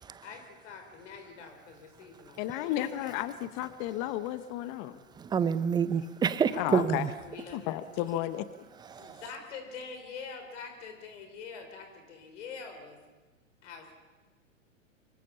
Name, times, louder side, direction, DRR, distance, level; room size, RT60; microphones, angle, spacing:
voice 1, 0.2-3.1 6.5-6.6 7.2-7.8 9.0-13.0 13.6-13.9, left 5 dB, 60° left, 4.8 m, -45 dB
voice 2, 2.4-5.0 6.6-7.1 7.5-8.5, left 13 dB, 35° left, 0.9 m, -33 dB
voice 3, 5.1-7.1 8.9-9.2, right 7 dB, 10° right, 0.6 m, -28 dB
25.5 x 23.0 x 5.6 m
hypercardioid pair, 115°, 40 cm